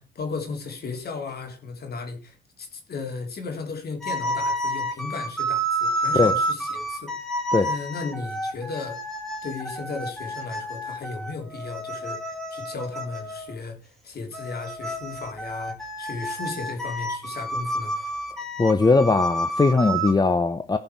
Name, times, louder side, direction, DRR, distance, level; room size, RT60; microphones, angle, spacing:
voice 1, 0.0-7.1 7.6-9.0 9.4-17.9, left 4 dB, 50° left, 3.3 m, -35 dB
sound 1, 4.0-13.6 14.3-20.1, right 1 dB, ahead, 2.7 m, -30 dB
voice 2, 18.6-20.8, left 3 dB, 20° left, 0.8 m, -20 dB
16.5 x 5.6 x 4.6 m
cardioid pair, 90°, 20 cm